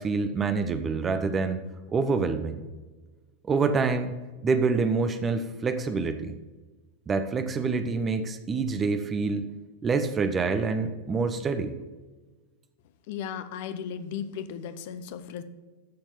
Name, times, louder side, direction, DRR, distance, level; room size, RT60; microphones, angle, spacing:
voice 1, 0.0-1.6 1.9-2.6 3.5-4.1 4.4-6.4 7.1-9.5 9.8-11.7, right 4 dB, 20° right, 9 dB, 0.7 m, -26 dB
voice 2, 13.1-15.4, left 8 dB, 50° left, 11 dB, 0.8 m, -36 dB
13.0 x 4.4 x 6.8 m, 1.3 s
figure-of-eight pair, 90°, 0 cm